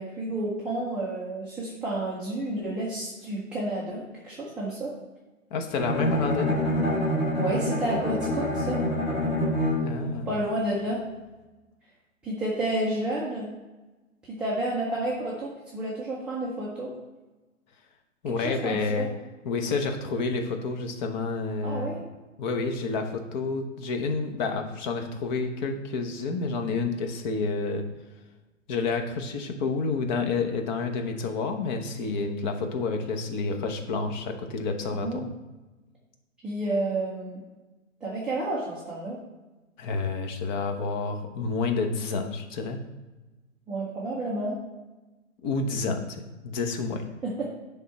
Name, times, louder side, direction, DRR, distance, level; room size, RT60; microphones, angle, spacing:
voice 1, 0.0-4.9 7.3-8.8 10.3-11.0 12.2-13.5 14.4-16.9 18.4-19.0 21.6-22.0 35.0-35.3 36.4-37.4 38.0-39.2 43.7-44.6 47.2-47.4, right 1 dB, 5° right, -8 dB, 0.4 m, -30 dB
voice 2, 5.5-6.6 9.8-10.3 18.2-19.1 19.4-22.0 22.4-27.9 28.7-35.3 39.8-42.8 45.4-47.0, left 4 dB, 35° left, 5 dB, 0.9 m, -29 dB
Bowed string instrument, 5.8-10.1, left 1 dB, 15° left, 1.5 m, -26 dB
9.8 x 3.6 x 4.2 m, 1.2 s
hypercardioid pair, 125°, 39 cm